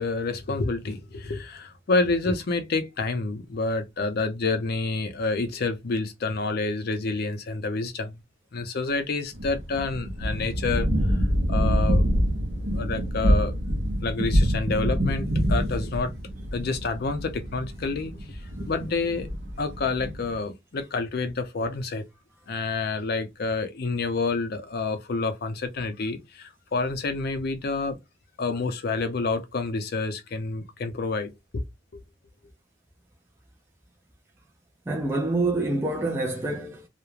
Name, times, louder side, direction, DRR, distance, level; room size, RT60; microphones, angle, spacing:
voice 1, 0.0-8.2 8.5-11.2 11.5-12.1 12.7-13.5 14.0-16.1 16.5-18.4 18.7-19.3 19.6-22.1 22.5-28.0 28.4-31.6, left 3 dB, 55° left, 0.5 m, -28 dB
sound 1, 9.3-20.4, equal, 70° right, 0.6 m, -26 dB
voice 2, 34.9-36.9, right 2 dB, 15° right, 0.4 m, -26 dB
2.3 x 2.1 x 3.0 m
head